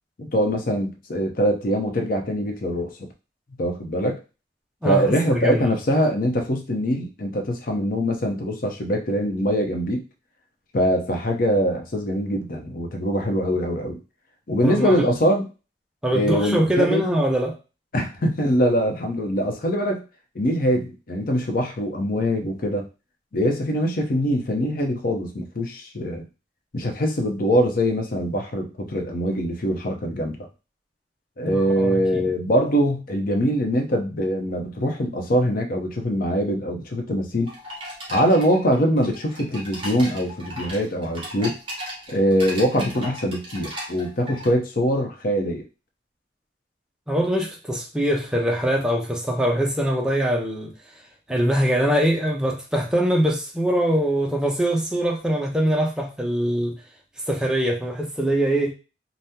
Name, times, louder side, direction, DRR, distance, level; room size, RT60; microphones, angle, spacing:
voice 1, 0.2-3.1 3.6-4.2 4.8-10.0 10.7-14.0 14.5-15.5 16.1-17.0 17.9-20.0 20.3-22.9 23.3-26.3 26.7-30.5 31.4-37.5 38.1-41.6 42.1-45.7, equal, 50° left, 0.6 m, -23 dB
voice 2, 4.8-5.6 14.6-15.0 16.0-17.6 31.5-32.3 47.1-50.7 51.3-56.8 57.3-58.7, equal, 5° right, 0.5 m, -23 dB
sound 1, 37.5-44.5, equal, 30° right, 1.0 m, -36 dB
3.5 x 2.0 x 2.8 m
head